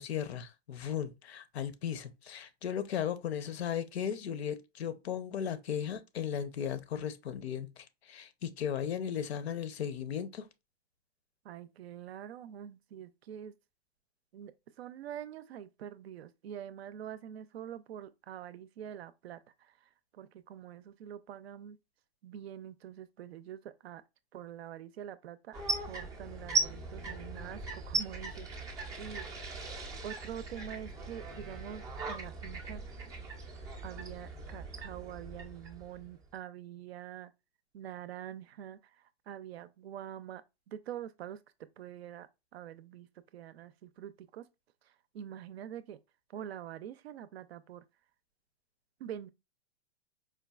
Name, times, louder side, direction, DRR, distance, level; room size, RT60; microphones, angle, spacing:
voice 1, 0.0-10.5, left 8 dB, 70° left, 0.7 m, -36 dB
voice 2, 11.4-13.5 14.3-14.5 14.8-21.8 22.2-24.0 24.3-25.6 25.8-29.3 30.0-33.0 33.8-37.3 37.7-40.4 40.7-41.4 41.8-43.1 43.3-44.5 44.8-46.0 46.3-47.8 49.0-49.3, right 10 dB, 70° right, 0.5 m, -45 dB
sound 1, 25.5-36.4, right 3 dB, 10° right, 0.4 m, -38 dB
4.5 x 2.3 x 2.3 m
hypercardioid pair, 130°, 33 cm